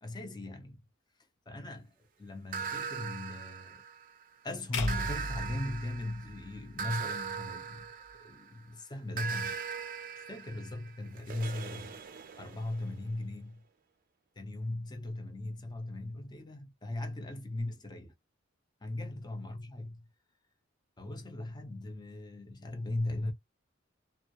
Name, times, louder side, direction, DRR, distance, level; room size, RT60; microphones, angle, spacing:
voice 1, 0.0-0.8 1.5-3.8 4.4-9.5 10.2-12.0 12.4-13.7 14.4-18.1 18.8-20.1 21.0-23.3, left 2 dB, 20° left, 0.5 m, -38 dB
sound 1, 2.5-4.2 4.9-8.6 9.2-12.9, right 6 dB, 45° right, 0.4 m, -40 dB
sound 2, 4.7-7.0, left 1 dB, 65° left, 0.7 m, -37 dB
2.2 x 2.0 x 2.7 m
head